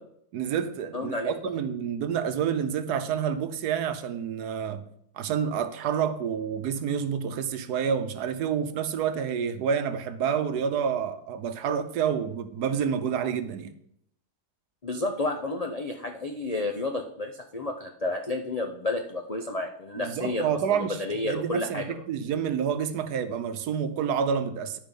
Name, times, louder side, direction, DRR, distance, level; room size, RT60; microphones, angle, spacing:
voice 1, 0.3-4.8 5.1-13.7 20.0-21.0 21.2-24.8, right 7 dB, 70° right, 1.2 m, -28 dB
voice 2, 0.9-1.4 14.8-22.0, left 2 dB, 65° left, 0.3 m, -31 dB
11.5 x 5.1 x 5.3 m
omnidirectional pair, 1.9 m